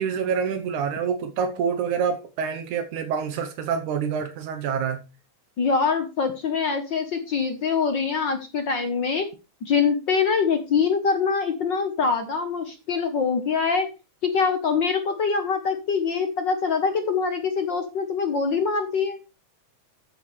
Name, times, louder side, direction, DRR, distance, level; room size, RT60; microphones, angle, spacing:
voice 1, 0.0-5.0, right 6 dB, 80° right, 2.5 m, -27 dB
voice 2, 5.6-9.3 9.6-13.9 14.2-19.2, left 5 dB, 55° left, 1.3 m, -24 dB
13.0 x 9.4 x 3.3 m
omnidirectional pair, 3.4 m